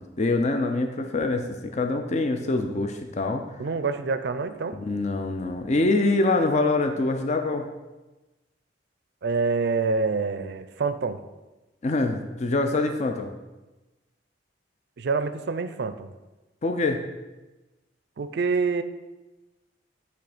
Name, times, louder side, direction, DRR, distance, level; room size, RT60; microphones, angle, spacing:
voice 1, 0.0-3.4 4.8-7.7 11.8-13.3 16.6-17.0, left 2 dB, 40° left, 6 dB, 0.5 m, -25 dB
voice 2, 3.6-4.8 9.2-11.2 15.0-16.1 18.2-18.8, right 4 dB, 60° right, 11 dB, 0.4 m, -26 dB
8.4 x 3.4 x 5.0 m, 1.1 s
head